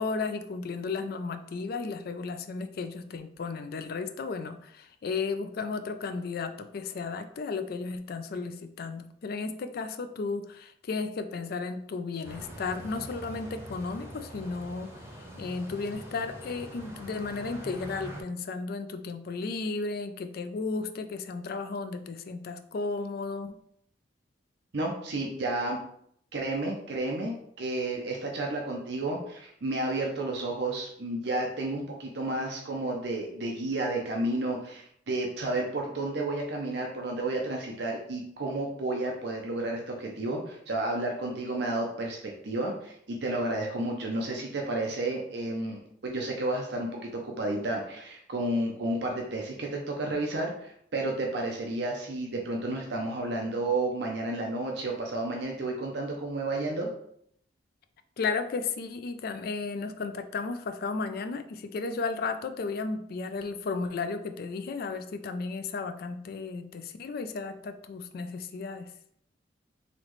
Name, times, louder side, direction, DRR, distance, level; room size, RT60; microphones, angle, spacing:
voice 1, 0.0-15.0 15.4-23.6 58.2-68.9, left 4 dB, 55° left, 9 dB, 0.4 m, -34 dB
sound 1, 12.2-18.2, equal, 15° right, 0.7 m, -44 dB
voice 2, 24.7-25.8 26.3-42.2 42.4-56.9, right 2 dB, 65° right, 0 dB, 0.6 m, -31 dB
4.1 x 3.0 x 3.1 m, 0.68 s
head